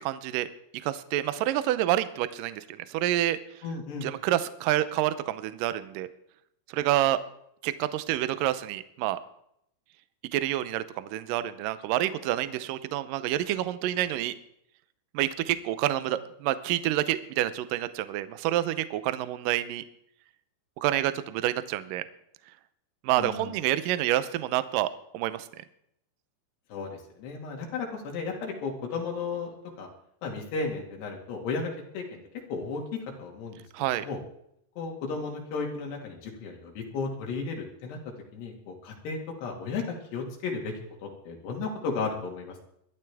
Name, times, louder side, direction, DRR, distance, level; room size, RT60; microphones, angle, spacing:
voice 1, 0.0-0.5 0.8-3.4 4.0-6.1 6.7-7.2 7.6-9.2 10.3-14.4 15.1-19.8 20.8-22.0 23.0-25.5 33.7-34.1, right 13 dB, 90° right, 13 dB, 1.9 m, -28 dB
voice 2, 3.6-4.1 23.2-23.5 26.7-29.9 30.2-32.2 32.5-33.6 34.0-34.2 34.8-38.0 38.3-40.7 41.0-42.6, left 4 dB, 75° left, 1 dB, 4.2 m, -34 dB
21.5 x 12.0 x 3.5 m, 0.73 s
omnidirectional pair, 4.8 m